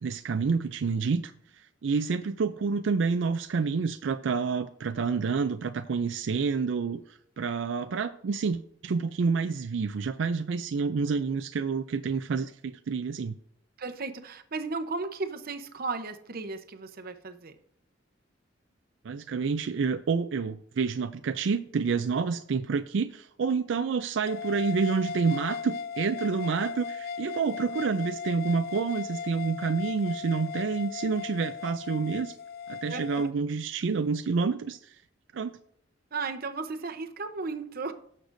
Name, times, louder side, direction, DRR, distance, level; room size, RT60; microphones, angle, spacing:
voice 1, 0.0-1.3 1.6-13.4 19.0-32.4 32.7-35.0 35.3-35.5, right 5 dB, 70° right, 10 dB, 0.4 m, -28 dB
voice 2, 13.8-17.5 32.9-33.1 36.1-37.9, right 4 dB, 50° right, 8 dB, 0.8 m, -35 dB
sound 1, 24.3-33.3, left 6 dB, 50° left, 0.3 m, -37 dB
17.5 x 6.6 x 2.6 m, 0.67 s
head